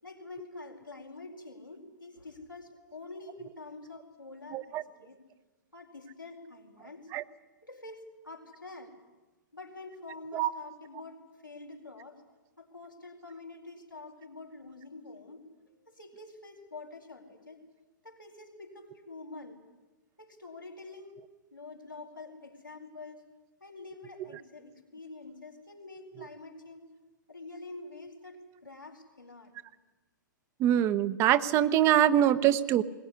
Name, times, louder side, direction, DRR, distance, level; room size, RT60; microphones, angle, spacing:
voice 1, 0.0-5.2 5.7-7.1 7.6-8.9 9.5-12.2 12.6-15.4 15.8-17.6 18.0-19.6 20.2-21.2 21.5-23.2 23.6-26.8 27.3-29.5, left 3 dB, 90° left, 1 dB, 4.4 m, -47 dB
voice 2, 4.5-4.8 7.1-7.2 10.3-10.5 30.6-32.8, right 11 dB, 25° right, 13 dB, 0.9 m, -24 dB
21.0 x 19.5 x 9.8 m, 1.2 s
figure-of-eight pair, 110°, 11 cm